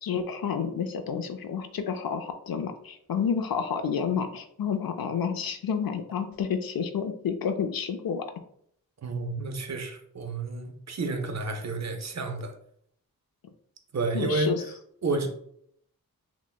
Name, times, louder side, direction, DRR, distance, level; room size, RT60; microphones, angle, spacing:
voice 1, 0.0-8.3 14.1-14.6, left 7 dB, 75° left, 7 dB, 0.5 m, -30 dB
voice 2, 9.0-12.5 13.9-14.5 15.0-15.3, right 3 dB, 50° right, 4 dB, 0.6 m, -30 dB
5.9 x 2.1 x 2.3 m, 0.68 s
wide cardioid pair, 110°, 36 cm